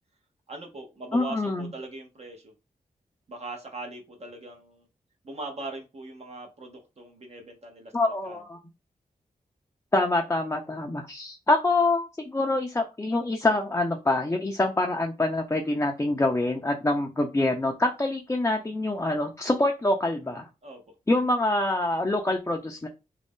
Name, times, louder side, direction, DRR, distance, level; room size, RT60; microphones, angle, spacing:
voice 1, 0.5-2.5 3.3-4.9 5.2-8.4 20.6-20.9, right 2 dB, 45° right, 2 dB, 0.7 m, -41 dB
voice 2, 1.1-1.7 7.9-8.6 9.9-20.5 21.1-22.9, left 2 dB, 20° left, 1 dB, 0.5 m, -25 dB
2.5 x 2.0 x 3.5 m, 0.28 s
cardioid pair, 70°, 15 cm